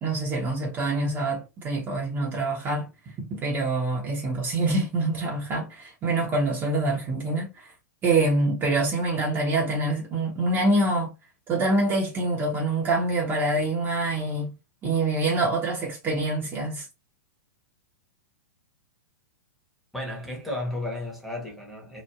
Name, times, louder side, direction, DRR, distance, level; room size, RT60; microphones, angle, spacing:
voice 1, 0.0-2.9 3.2-7.7 8.0-11.1 11.5-14.5 14.8-16.9, right 2 dB, 25° right, 1.0 m, -25 dB
voice 2, 19.9-22.0, left 1 dB, ahead, 1.2 m, -33 dB
3.1 x 2.3 x 2.4 m
figure-of-eight pair, 105°, 10 cm